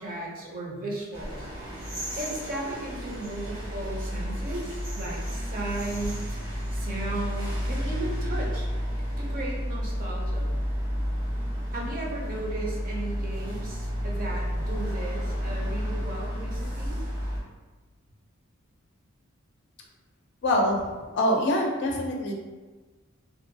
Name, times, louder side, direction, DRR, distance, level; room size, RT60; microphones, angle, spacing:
voice 1, 0.0-1.5 2.2-6.4 6.7-8.7 9.2-10.5 11.7-17.0, right 2 dB, 45° right, -3 dB, 0.6 m, -35 dB
sound 1, 1.1-17.4, equal, 65° right, 0.9 m, -31 dB
voice 2, 20.4-20.9 21.1-22.3, left 1 dB, 60° left, 1 dB, 0.4 m, -24 dB
2.6 x 2.2 x 2.6 m, 1.3 s
head